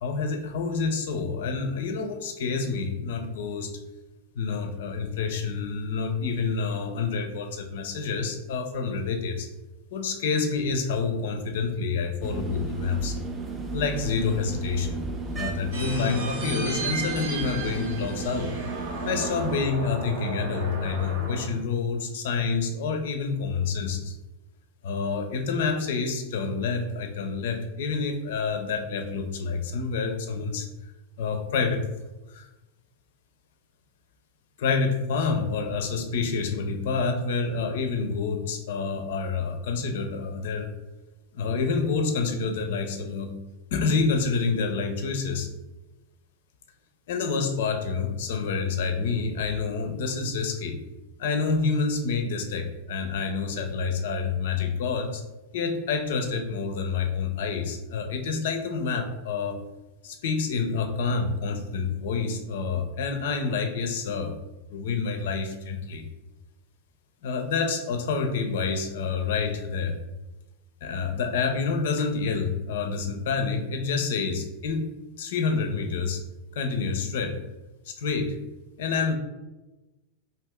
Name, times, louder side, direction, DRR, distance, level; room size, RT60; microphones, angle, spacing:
voice 1, 0.0-3.8 4.4-9.5 9.9-13.2 13.7-15.0 15.3-18.5 19.1-24.2 24.8-30.7 31.2-31.8 32.3-32.5 34.6-40.7 41.3-43.4 43.7-45.5 47.1-50.8 51.2-55.2 55.5-59.6 60.0-64.3 64.7-66.1 67.2-70.0 70.8-74.9 75.2-76.2 76.5-77.4 77.9-78.4 78.8-79.1, left 4 dB, 55° left, 5 dB, 0.4 m, -28 dB
sound 1, 12.2-19.6, right 3 dB, 20° right, 0.4 m, -34 dB
sound 2, 15.7-21.4, right 2 dB, 60° right, 0.8 m, -34 dB
2.6 x 2.5 x 3.3 m, 1.1 s
figure-of-eight pair, 90°, 0 cm